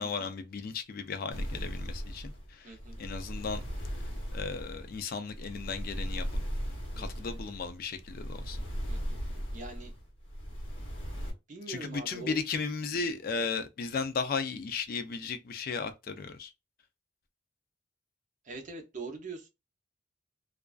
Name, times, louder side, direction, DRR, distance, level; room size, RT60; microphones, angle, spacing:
voice 1, 0.0-3.6 4.3-6.2 7.0-8.7 11.7-16.5, left 5 dB, 50° left, 0.4 m, -35 dB
sound 1, 1.3-11.3, equal, 65° left, 1.0 m, -37 dB
voice 2, 2.6-3.0 6.9-7.2 8.9-9.2 9.5-9.9 11.5-12.4 18.4-19.5, right 3 dB, 40° right, 0.6 m, -43 dB
2.4 x 2.3 x 2.2 m
head